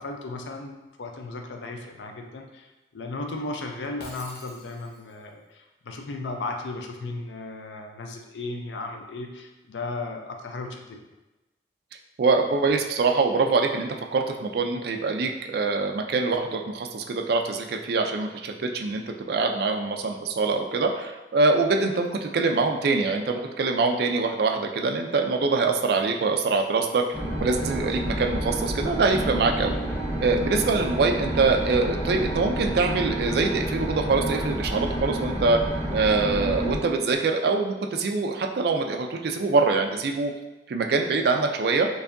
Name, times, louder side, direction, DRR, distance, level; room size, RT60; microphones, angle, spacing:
voice 1, 0.0-2.7 2.9-11.0, left 2 dB, 85° left, 3 dB, 0.5 m, -35 dB
Shatter, 4.0-5.2, left 1 dB, 60° left, 0.8 m, -45 dB
voice 2, 12.2-27.0 27.4-29.8 30.2-35.6 35.9-40.3 40.7-41.9, right 3 dB, 60° right, 4 dB, 0.4 m, -24 dB
sound 1, 27.1-36.8, right 1 dB, 15° left, 0.6 m, -29 dB
4.6 x 2.6 x 2.5 m, 1.1 s
head